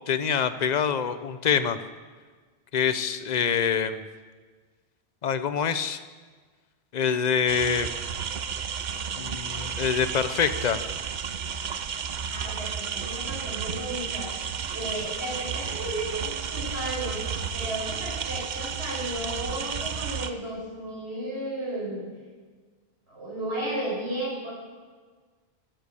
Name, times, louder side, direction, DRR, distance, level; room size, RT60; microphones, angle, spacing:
voice 1, 0.1-1.8 2.7-4.0 5.2-6.0 6.9-7.9 9.2-10.8, left 7 dB, 45° left, 12 dB, 0.7 m, -25 dB
sound 1, 7.5-20.3, right 7 dB, 50° right, 0.7 m, -32 dB
voice 2, 12.3-14.3 14.7-22.0 23.1-24.5, right 1 dB, 80° right, -5 dB, 5.6 m, -34 dB
13.5 x 7.9 x 8.3 m, 1.5 s
omnidirectional pair, 1.1 m